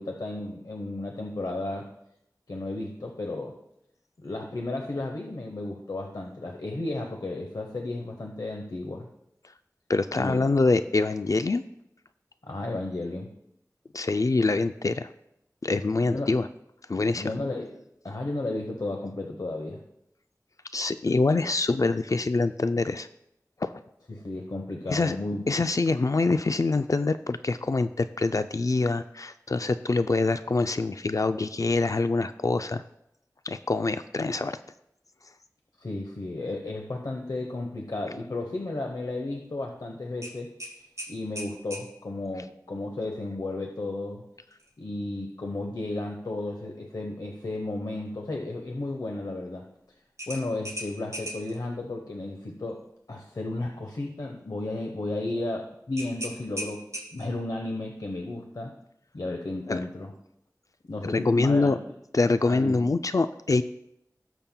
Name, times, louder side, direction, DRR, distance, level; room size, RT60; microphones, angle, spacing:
voice 1, 0.0-1.9 2.5-3.6 4.2-9.1 10.1-10.4 12.4-13.3 16.0-16.3 17.1-19.8 24.1-25.4 35.8-40.5 41.1-44.2 44.8-49.6 50.3-56.8 57.1-58.7 59.1-60.1 60.9-61.7 62.4-62.8, left 2 dB, 85° left, 2 dB, 0.9 m, -33 dB
voice 2, 9.9-11.6 13.9-15.1 15.6-16.5 16.9-17.3 20.7-23.1 23.6-23.7 24.9-25.2 25.5-32.8 33.5-34.6 59.7-59.8 61.1-61.8 62.1-63.6, left 3 dB, 55° left, 11 dB, 0.3 m, -25 dB
sound 1, 40.2-41.9 44.5-44.7 45.2-45.3 50.2-51.6 56.0-57.4, equal, 50° right, 3.7 m, -38 dB
17.5 x 7.1 x 2.2 m, 0.79 s
wide cardioid pair, 45°, 7 cm